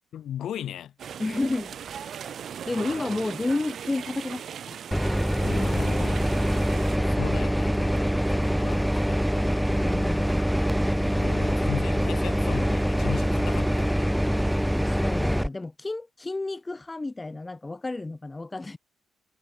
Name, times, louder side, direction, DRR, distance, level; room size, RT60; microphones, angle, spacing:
voice 1, 0.1-0.9 2.8-3.2 5.4-6.2 7.0-9.6 10.9-14.0, left 10 dB, 70° left, 2.4 m, -37 dB
sound 1, 1.0-7.0, right 8 dB, 65° right, 0.9 m, -38 dB
voice 2, 1.2-1.7 2.7-4.8 5.4-6.7 9.7-10.4 14.8-18.8, left 2 dB, 20° left, 0.9 m, -31 dB
sound 2, 4.9-15.5, equal, ahead, 0.6 m, -24 dB
supercardioid pair, 60°, 0 cm